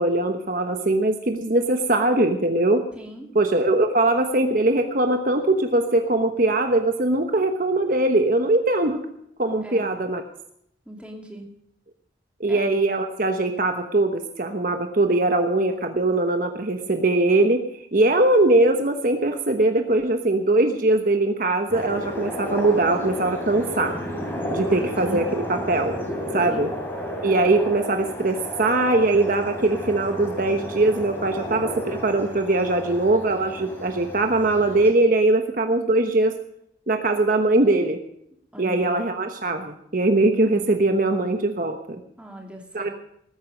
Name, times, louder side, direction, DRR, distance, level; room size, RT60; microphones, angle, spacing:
voice 1, 0.0-2.8 3.3-9.0 9.4-10.2 12.4-17.6 17.9-23.9 24.5-26.0 26.3-26.7 27.2-36.3 36.9-38.0 38.6-42.0 42.7-42.9, right 2 dB, 50° right, 6 dB, 1.1 m, -21 dB
voice 2, 2.9-3.3 9.6-9.9 10.9-11.5 12.5-12.7 24.5-25.2 26.5-26.7 38.5-39.1 42.2-42.9, right 1 dB, 5° right, 1 dB, 2.6 m, -40 dB
sound 1, 21.7-34.9, equal, 10° left, 3.2 m, -32 dB
19.5 x 9.5 x 5.3 m, 0.72 s
head